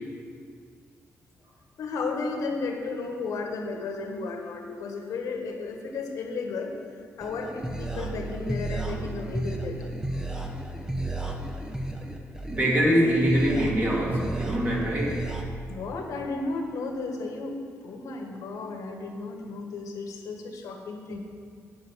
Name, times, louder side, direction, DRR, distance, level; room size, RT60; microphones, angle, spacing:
voice 1, 1.8-6.7 7.2-9.8 15.7-17.6 17.8-21.2, left 3 dB, 85° left, 2 dB, 1.6 m, -33 dB
sound 1, 7.2-15.4, right 2 dB, 10° right, 1.1 m, -33 dB
voice 2, 12.5-15.3, equal, 35° right, -4 dB, 2.9 m, -24 dB
9.9 x 7.8 x 6.3 m, 2.1 s
cardioid pair, 105°, 6 cm